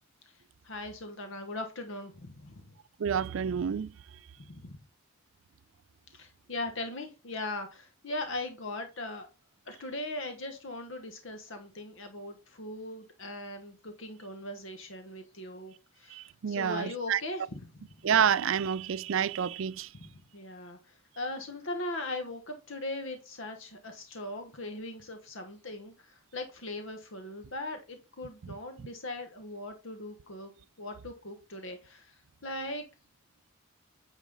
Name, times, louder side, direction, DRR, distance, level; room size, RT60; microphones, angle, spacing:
voice 1, 0.6-2.7 4.4-4.7 6.1-9.3 9.7-17.8 20.0-30.5 30.8-32.8, left 2 dB, 65° left, 1.1 m, -39 dB
voice 2, 3.0-3.9 16.1-17.2 18.0-19.9, right 8 dB, 65° right, 0.4 m, -28 dB
9.3 x 5.0 x 3.9 m
head